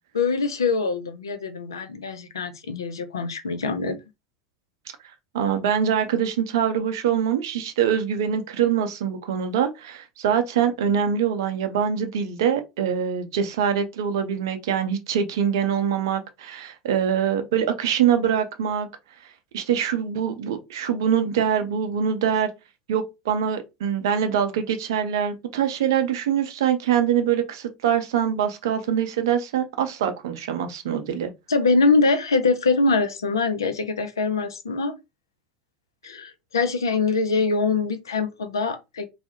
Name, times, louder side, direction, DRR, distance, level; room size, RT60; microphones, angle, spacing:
voice 1, 0.1-4.0 31.5-35.0 36.0-39.1, left 4 dB, 80° left, 0.4 m, -23 dB
voice 2, 5.3-18.9 19.5-22.5 22.9-31.3, right 8 dB, 65° right, 0.5 m, -24 dB
2.3 x 2.0 x 2.7 m
figure-of-eight pair, 75°, 2 cm